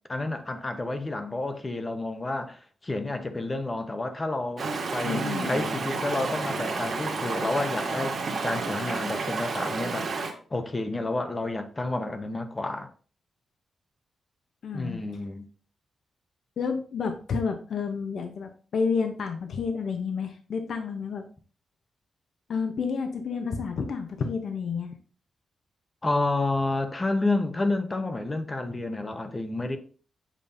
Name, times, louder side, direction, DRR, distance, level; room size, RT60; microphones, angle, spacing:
voice 1, 0.1-10.1 10.5-12.9 14.7-15.4 26.0-29.8, left 2 dB, 20° left, 0.8 m, -30 dB
Stream, 4.6-10.3, right 3 dB, 50° right, 1.3 m, -30 dB
voice 2, 5.0-5.5 14.6-15.0 16.6-21.2 22.5-24.9, left 5 dB, 65° left, 0.8 m, -30 dB
7.6 x 5.1 x 2.7 m
wide cardioid pair, 135°, 0 cm